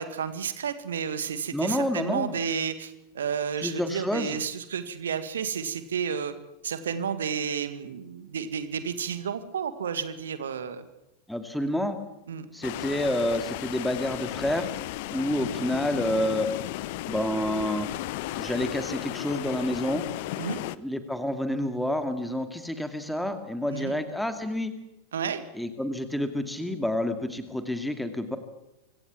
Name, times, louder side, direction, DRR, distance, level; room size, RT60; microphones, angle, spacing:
voice 1, 0.0-6.3 6.6-10.9 12.3-12.5 20.4-20.6 23.7-24.0 25.1-25.4, right 7 dB, 65° right, 11 dB, 1.9 m, -31 dB
voice 2, 1.5-2.4 3.6-4.4 11.3-12.0 12.5-14.7 15.1-16.5 17.1-17.9 18.3-20.1 20.7-24.7 25.6-28.4, left 1 dB, ahead, 8 dB, 2.2 m, -29 dB
sound 1, 12.6-20.8, left 16 dB, 50° left, 0.8 m, -34 dB
24.5 x 17.0 x 7.3 m, 0.93 s
figure-of-eight pair, 90°, 0 cm